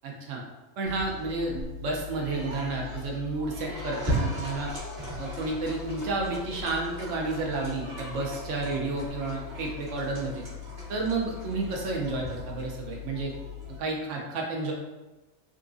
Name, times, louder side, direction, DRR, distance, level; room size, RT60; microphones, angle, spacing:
voice 1, 0.0-0.4 0.8-4.7 5.2-10.4 10.9-13.3 13.8-14.7, right 3 dB, 65° right, -1 dB, 0.8 m, -31 dB
sound 1, 0.9-13.8, left 1 dB, 40° right, 1.2 m, -37 dB
3.8 x 2.5 x 2.4 m, 1.1 s
omnidirectional pair, 1.5 m